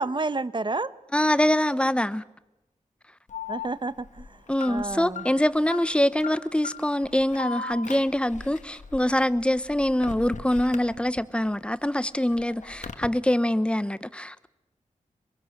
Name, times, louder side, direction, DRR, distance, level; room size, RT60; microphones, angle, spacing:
voice 1, 0.0-0.9 3.5-5.3, right 3 dB, 35° right, 1.0 m, -30 dB
voice 2, 1.1-2.2 4.5-14.5, left 1 dB, 10° left, 0.9 m, -24 dB
Alarm, 3.3-11.5 11.8-13.1, left 5 dB, 60° left, 1.7 m, -39 dB
24.5 x 22.5 x 6.6 m
wide cardioid pair, 70°, 14 cm